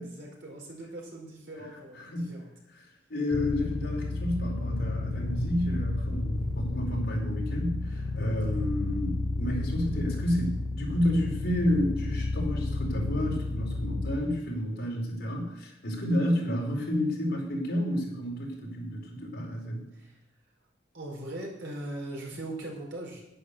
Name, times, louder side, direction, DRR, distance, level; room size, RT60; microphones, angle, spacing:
voice 1, 0.0-2.5 6.3-6.5 8.4-8.7 19.9-20.2 20.9-23.2, right 1 dB, 70° right, 0 dB, 4.7 m, -40 dB
voice 2, 2.0-2.3 3.1-19.9, equal, 60° left, -2 dB, 4.7 m, -30 dB
sound 1, 3.3-14.2, left 3 dB, 20° left, 1.1 m, -32 dB
11.0 x 10.0 x 6.7 m, 0.82 s
head